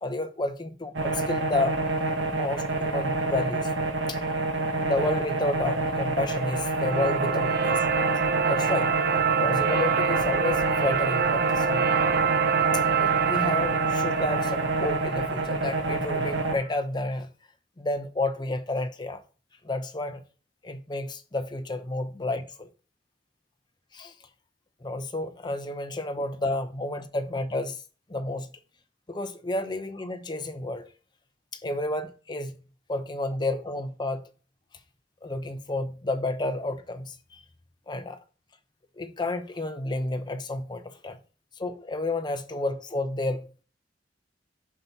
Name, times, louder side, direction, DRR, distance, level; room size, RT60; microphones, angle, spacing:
voice 1, 0.0-1.8 2.3-3.7 4.1-4.2 4.8-7.8 8.5-8.9 9.4-11.9 13.0-17.3 17.8-19.2 19.6-20.2 20.6-22.7 23.9-24.1 24.8-27.8 28.1-28.5 29.1-30.9 31.5-32.5 32.9-34.3 35.2-37.2 37.9-38.2 39.0-41.2 41.6-43.6, left 2 dB, 25° left, 0.7 m, -31 dB
sound 1, 1.0-16.6, right 2 dB, 75° right, 1.1 m, -28 dB
sound 2, 6.3-16.4, right 7 dB, 55° right, 0.5 m, -27 dB
7.4 x 5.7 x 2.8 m
head